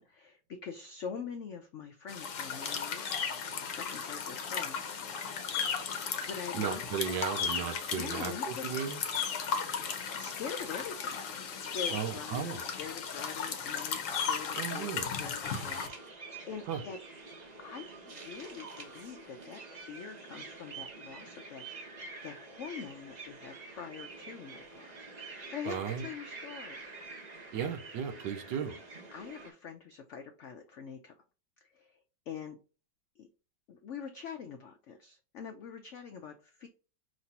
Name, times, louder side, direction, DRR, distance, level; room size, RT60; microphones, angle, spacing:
voice 1, 0.0-3.2 3.6-5.0 6.3-6.8 7.9-8.7 9.7-9.8 10.1-11.2 11.6-17.0 17.6-26.9 29.1-31.1 31.6-32.0 32.3-32.6 33.2-33.3 33.7-36.7, left 6 dB, 85° left, 5 dB, 0.6 m, -44 dB
sound 1, 2.1-15.9, left 6 dB, 55° left, 0.9 m, -35 dB
voice 2, 6.5-9.0 11.9-12.6 14.6-15.1 16.7-16.8 25.6-26.1 27.5-28.8, right 8 dB, 80° right, 9 dB, 1.3 m, -35 dB
sound 2, 15.4-29.5, right 3 dB, 35° right, 0.7 m, -47 dB
5.3 x 2.9 x 2.8 m, 0.34 s
omnidirectional pair, 1.9 m